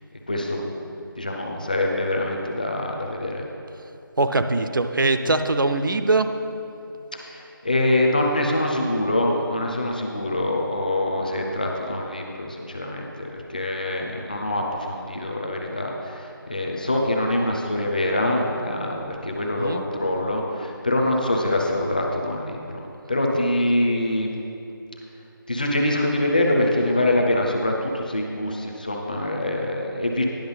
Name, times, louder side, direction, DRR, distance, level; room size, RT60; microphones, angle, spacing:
voice 1, 0.3-0.7 1.1-3.4 7.1-24.3 25.5-30.2, left 1 dB, 20° left, 0 dB, 0.5 m, -24 dB
voice 2, 4.2-6.3 19.6-19.8, right 2 dB, 65° right, 8 dB, 0.6 m, -22 dB
10.5 x 5.9 x 5.5 m, 2.8 s
figure-of-eight pair, 175°, 12 cm